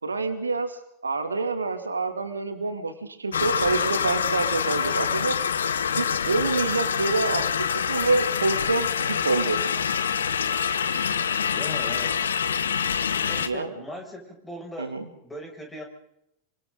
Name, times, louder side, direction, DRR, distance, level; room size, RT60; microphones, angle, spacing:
voice 1, 0.0-5.3 6.0-7.4 7.9-9.6 13.4-13.7 14.8-15.0, right 3 dB, 75° right, 7 dB, 2.7 m, -27 dB
sound 1, 3.3-13.5, left 7 dB, 70° left, 1.4 m, -26 dB
voice 2, 11.5-12.3 13.3-15.8, equal, 10° left, 2 dB, 6.6 m, -39 dB
27.5 x 25.0 x 4.0 m, 0.77 s
figure-of-eight pair, 90°, 0 cm